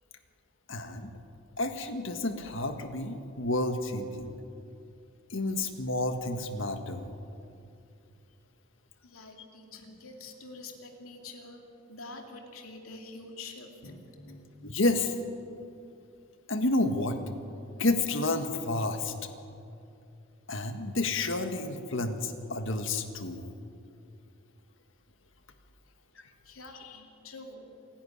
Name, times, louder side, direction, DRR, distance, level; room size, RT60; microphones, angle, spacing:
voice 1, 0.7-1.1 1.6-4.3 5.3-7.1 14.6-15.1 16.5-17.2 17.8-19.1 20.5-23.4, left 2 dB, 65° left, 7 dB, 1.7 m, -30 dB
voice 2, 9.0-11.6 11.9-14.6 26.4-27.8, left 3 dB, 90° left, 2 dB, 2.8 m, -46 dB
27.5 x 11.0 x 10.0 m, 2.5 s
head